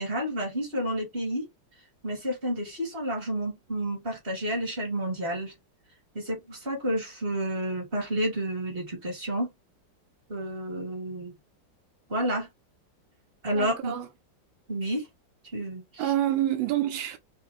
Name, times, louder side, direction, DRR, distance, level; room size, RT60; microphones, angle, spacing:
voice 1, 0.0-1.5 2.0-5.5 6.1-9.5 10.3-11.3 12.1-12.5 13.4-13.9 14.7-15.0 15.5-16.0, right 1 dB, 30° right, 2.3 m, -30 dB
voice 2, 13.5-14.1 16.0-17.2, right 12 dB, 90° right, 1.5 m, -27 dB
5.7 x 2.6 x 2.4 m
omnidirectional pair, 2.0 m